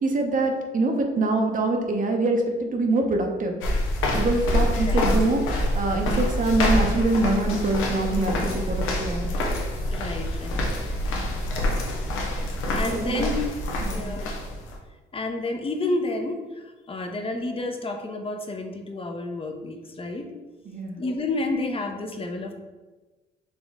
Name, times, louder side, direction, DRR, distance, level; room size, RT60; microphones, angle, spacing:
voice 1, 0.0-3.5 4.1-9.3 12.8-13.3 13.8-14.1 20.7-21.0, right 2 dB, 40° right, 2 dB, 0.7 m, -24 dB
sound 1, 3.6-14.8, left 1 dB, 90° left, 0.8 m, -26 dB
voice 2, 9.9-10.9 12.5-13.4 13.9-14.3 15.1-20.3 21.0-22.6, left 2 dB, 30° left, 4 dB, 0.6 m, -30 dB
4.2 x 2.9 x 3.5 m, 1.2 s
cardioid pair, 90°, 20 cm